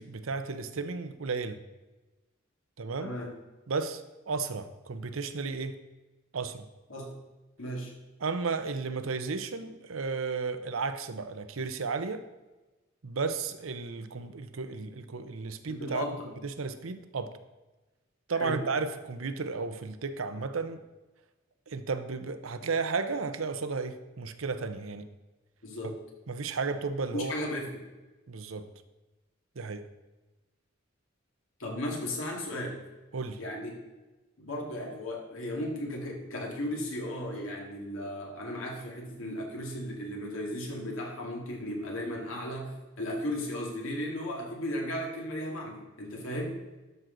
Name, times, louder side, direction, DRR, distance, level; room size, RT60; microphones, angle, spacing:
voice 1, 0.0-1.6 2.8-3.1 3.7-5.7 6.3-6.6 8.2-12.2 13.0-16.1 16.4-17.3 18.3-20.8 21.7-25.1 25.8-25.9 26.3-27.4 28.3-28.7 29.6-29.8 33.1-33.4, right 4 dB, 85° right, 10 dB, 0.7 m, -33 dB
voice 2, 3.0-3.3 6.9-7.1 7.6-7.9 15.7-16.2 18.3-18.6 25.6-25.9 27.1-27.7 31.6-32.8 33.4-33.8 34.4-46.6, left 1 dB, 80° left, 0 dB, 2.3 m, -35 dB
12.0 x 6.3 x 3.9 m, 1.1 s
head